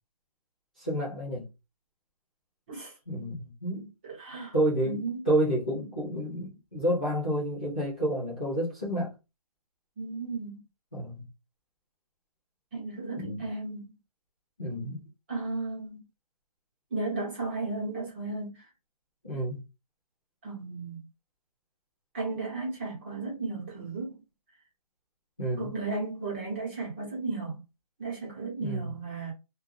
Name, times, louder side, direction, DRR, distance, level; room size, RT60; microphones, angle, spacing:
voice 1, 0.8-1.5 3.1-3.9 4.5-9.1 10.9-11.3 13.2-13.4 14.6-15.0 19.2-19.6 25.4-25.7 28.6-28.9, right 1 dB, 15° left, 0.3 m, -30 dB
voice 2, 4.0-4.5 4.8-5.2 10.0-10.6 12.7-13.9 15.3-16.0 16.9-18.7 20.4-21.0 22.1-24.1 25.6-27.6 28.0-29.3, right 3 dB, 20° right, 0.9 m, -34 dB
2.2 x 2.1 x 3.0 m
hypercardioid pair, 170°, 20 cm